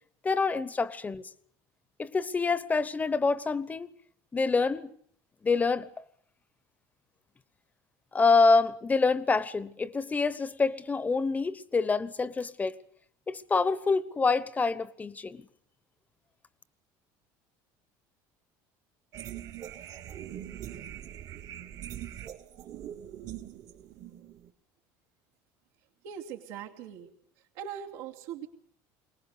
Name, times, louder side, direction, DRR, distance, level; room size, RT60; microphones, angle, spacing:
voice 1, 0.2-1.2 2.0-3.9 4.3-4.9 5.4-5.9 8.1-12.8 13.3-15.4, left 4 dB, 20° left, 1.0 m, -26 dB
sound 1, 19.1-24.5, right 11 dB, 50° right, 1.5 m, -42 dB
voice 2, 26.0-27.1 27.5-28.5, right 9 dB, 85° right, 2.8 m, -40 dB
23.0 x 19.0 x 8.2 m
cardioid pair, 125°, 8 cm